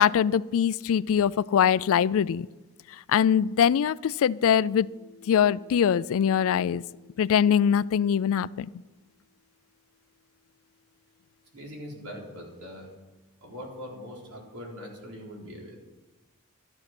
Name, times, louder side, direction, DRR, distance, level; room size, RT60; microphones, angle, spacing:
voice 1, 0.0-2.5 3.1-4.9 5.2-6.8 7.2-8.7, left 8 dB, 65° left, 21 dB, 0.3 m, -22 dB
voice 2, 11.5-12.9 13.4-15.8, equal, 90° right, -2 dB, 4.1 m, -41 dB
13.0 x 9.8 x 6.0 m, 1.2 s
head